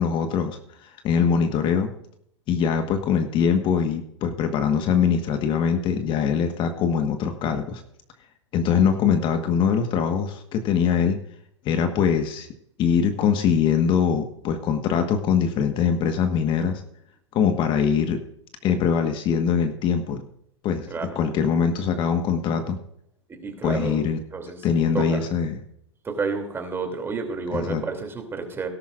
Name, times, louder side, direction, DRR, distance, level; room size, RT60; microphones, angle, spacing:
voice 1, 0.0-1.9 2.5-7.8 8.5-11.2 11.6-12.5 12.8-16.8 17.3-18.2 18.6-20.2 20.6-22.8 23.6-24.2 24.6-25.6 27.5-27.8, left 7 dB, 35° left, 7 dB, 1.4 m, -22 dB
voice 2, 20.9-21.2 23.3-24.0 24.3-24.7 24.9-25.2 26.0-28.7, right 4 dB, 15° right, 5 dB, 2.8 m, -30 dB
18.0 x 11.5 x 2.5 m, 0.72 s
hypercardioid pair, 115°, 15 cm